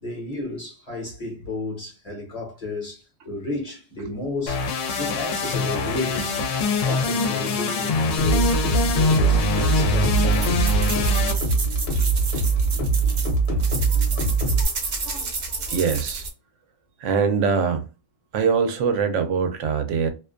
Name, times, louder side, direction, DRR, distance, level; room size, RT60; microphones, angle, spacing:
voice 1, 0.0-6.4 6.8-11.0, left 2 dB, 35° left, 0.8 m, -33 dB
sound 1, 4.5-11.3, left 4 dB, 90° left, 1.0 m, -24 dB
sound 2, 8.2-14.6, right 4 dB, 60° left, 1.0 m, -22 dB
sound 3, 10.2-16.3, right 3 dB, 50° right, 0.6 m, -31 dB
voice 2, 15.7-16.2 17.0-17.8 18.3-20.1, right 6 dB, 75° right, 0.9 m, -23 dB
2.5 x 2.2 x 2.4 m
omnidirectional pair, 1.3 m